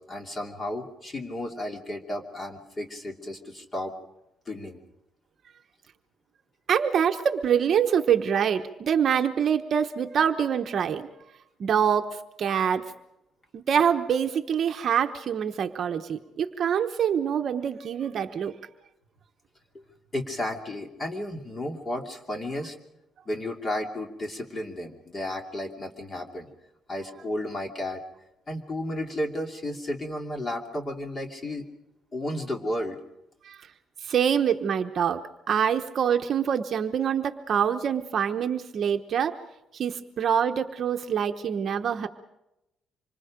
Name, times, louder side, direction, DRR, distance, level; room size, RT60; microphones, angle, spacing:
voice 1, 0.0-3.9 4.5-4.8 19.7-19.8 20.1-22.7 23.3-26.5 26.9-28.0 28.5-31.7 32.1-33.0, left 1 dB, 25° left, 3 dB, 2.7 m, -33 dB
voice 2, 6.7-11.1 11.6-12.8 13.5-18.5 33.4-33.6 34.0-39.4 39.7-42.1, right 8 dB, 45° right, 6 dB, 1.0 m, -25 dB
26.5 x 25.0 x 5.1 m, 0.88 s
cardioid pair, 165°, 0 cm